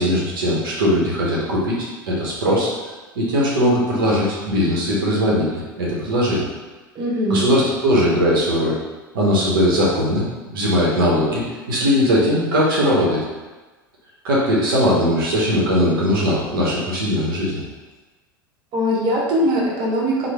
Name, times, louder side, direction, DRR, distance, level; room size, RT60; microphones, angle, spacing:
voice 1, 0.0-2.7 3.2-6.5 7.3-8.8 9.1-10.3 10.5-13.2 14.2-17.6, equal, 75° right, -5 dB, 0.8 m, -19 dB
voice 2, 6.9-7.4 18.7-20.3, equal, 40° right, -3 dB, 0.9 m, -20 dB
3.2 x 2.1 x 3.3 m, 1.3 s
hypercardioid pair, 80°, 12 cm